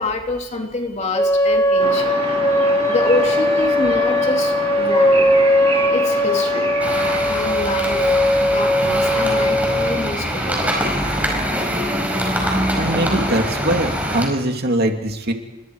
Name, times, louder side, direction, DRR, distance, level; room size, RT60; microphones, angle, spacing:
voice 1, 0.0-2.3 2.9-5.3 5.9-6.7 7.3-10.8, left 2 dB, 35° left, 2 dB, 2.9 m, -26 dB
sound 1, 1.1-10.1, left 1 dB, 15° left, 2.2 m, -18 dB
sound 2, 1.8-7.2, right 3 dB, 30° right, 3.6 m, -28 dB
sound 3, 6.8-14.3, equal, 10° right, 5.3 m, -23 dB
voice 2, 12.7-15.3, right 1 dB, 55° right, 4 dB, 2.5 m, -22 dB
30.0 x 24.5 x 4.8 m, 0.99 s
head